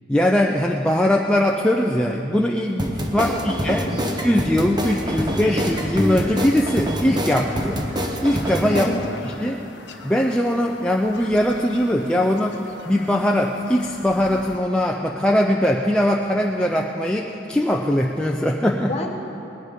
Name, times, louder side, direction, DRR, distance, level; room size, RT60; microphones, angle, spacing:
voice 1, 0.1-3.9 4.2-7.8 8.2-8.9 9.2-9.6 10.0-12.6 12.8-18.9, left 1 dB, 5° left, 0 dB, 0.4 m, -21 dB
sound 1, 2.8-8.9, equal, 20° right, 0.9 m, -25 dB
voice 2, 3.2-3.5 3.9-4.2 5.1-5.4 8.7-9.2 18.8-19.1, left 1 dB, 30° left, 2 dB, 1.2 m, -30 dB
Bird vocalization bird call bird song, 4.8-14.6, left 3 dB, 65° left, 1.0 m, -42 dB
19.5 x 10.0 x 5.2 m, 3.0 s
head